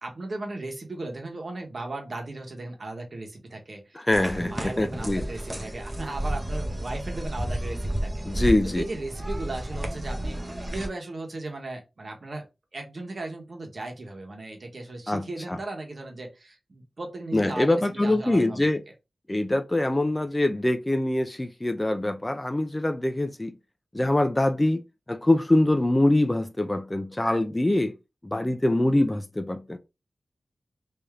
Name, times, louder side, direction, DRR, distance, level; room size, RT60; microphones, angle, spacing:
voice 1, 0.0-4.0 4.3-8.5 8.8-12.4 12.7-18.7, right 2 dB, 50° right, 1.1 m, -37 dB
voice 2, 3.9-5.2 8.3-8.8 15.1-15.6 17.3-18.8 19.3-23.5 23.9-24.8 25.1-27.9 28.2-29.8, left 1 dB, 15° left, 0.4 m, -24 dB
sound 1, 4.1-10.9, right 1 dB, 15° right, 0.7 m, -32 dB
3.4 x 2.7 x 3.5 m
wide cardioid pair, 100°, 0 cm